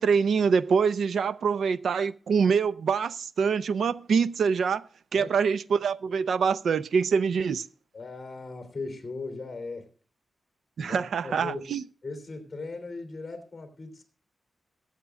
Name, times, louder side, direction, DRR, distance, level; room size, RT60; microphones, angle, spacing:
voice 1, 0.0-4.8 5.1-7.7 10.8-11.8, right 6 dB, 80° right, 0.5 m, -25 dB
voice 2, 7.9-9.9 10.8-11.6 12.0-14.0, left 3 dB, 25° left, 3.1 m, -38 dB
22.0 x 8.2 x 2.4 m
wide cardioid pair, 145°, 0 cm